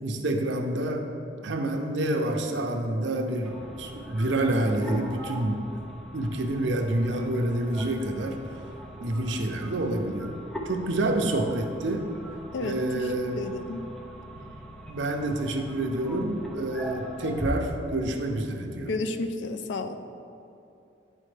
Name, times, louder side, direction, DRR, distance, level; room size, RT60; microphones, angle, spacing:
voice 1, 0.0-1.0 1.4-5.6 6.1-8.4 9.0-10.4 10.6-12.1 12.6-13.4 14.4-14.5 14.9-18.9, right 1 dB, 75° right, 3 dB, 0.6 m, -28 dB
sound 1, 3.4-17.5, equal, 5° left, 0.5 m, -41 dB
voice 2, 12.5-13.1 13.3-13.9 18.9-20.0, left 3 dB, 75° left, 8 dB, 0.4 m, -31 dB
9.9 x 4.2 x 3.3 m, 2.7 s
head